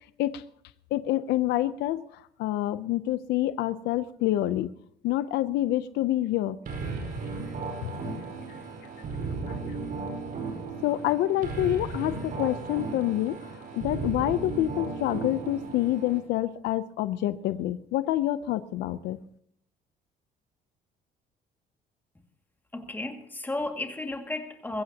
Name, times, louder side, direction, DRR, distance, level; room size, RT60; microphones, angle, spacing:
voice 1, 0.9-2.0 2.4-4.7 5.0-6.6 7.8-8.2 9.5-9.6 10.8-13.4 13.7-19.2, left 14 dB, 80° left, 14 dB, 0.6 m, -27 dB
sound 1, 6.7-16.2, right 4 dB, 60° right, 4.7 m, -35 dB
voice 2, 22.7-24.8, left 2 dB, 10° left, 4 dB, 2.1 m, -33 dB
21.5 x 15.5 x 2.9 m, 0.69 s
cardioid pair, 110°, 17 cm